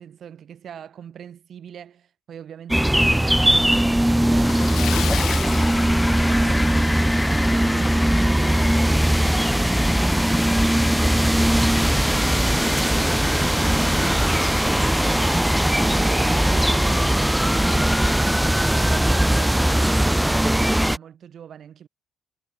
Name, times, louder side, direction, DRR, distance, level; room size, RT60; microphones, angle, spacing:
voice 1, 0.0-18.3 18.5-21.9, right 9 dB, 55° right, 5.4 m, -41 dB
sound 1, 2.7-21.0, right 1 dB, 5° right, 0.3 m, -20 dB
Splash splatter, 4.3-6.7 7.0-7.2 7.6-7.7 9.2-9.3 9.6-9.7 10.3-10.6, left 12 dB, 70° left, 1.5 m, -32 dB
sound 2, 4.4-18.2, left 2 dB, 15° left, 1.3 m, -31 dB
supercardioid pair, 60°, 0 cm